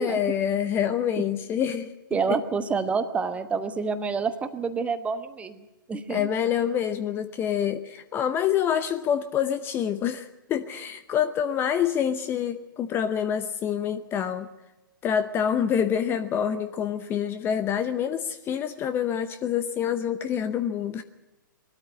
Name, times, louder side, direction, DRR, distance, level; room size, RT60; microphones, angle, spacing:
voice 1, 0.0-1.9 2.3-2.4 6.1-14.5 15.0-21.0, left 9 dB, 20° left, 11 dB, 0.8 m, -26 dB
voice 2, 2.1-5.6 5.9-6.3, right 5 dB, 10° right, 10 dB, 1.1 m, -28 dB
20.5 x 13.0 x 9.8 m, 1.0 s
figure-of-eight pair, 120°, 11 cm